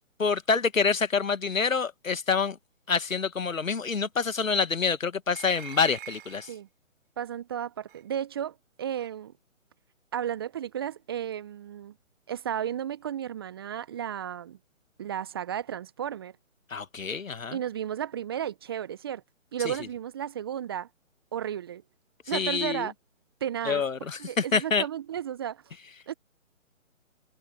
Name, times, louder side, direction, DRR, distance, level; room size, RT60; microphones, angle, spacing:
voice 1, 0.2-2.6 2.9-6.5 16.7-17.6 19.6-19.7 22.3-22.9 23.6-24.8, left 5 dB, 80° left, 1.6 m, -27 dB
sound 1, 5.3-6.6 7.9-8.0 9.0-9.1, right 10 dB, 40° right, 6.1 m, -44 dB
voice 2, 7.2-9.3 10.1-11.9 12.3-14.6 15.0-16.3 17.5-19.2 19.5-20.9 21.3-21.8 22.3-22.9 23.4-23.8 24.2-25.7 26.1-26.2, right 9 dB, 20° right, 0.7 m, -33 dB
figure-of-eight pair, 145°, 39 cm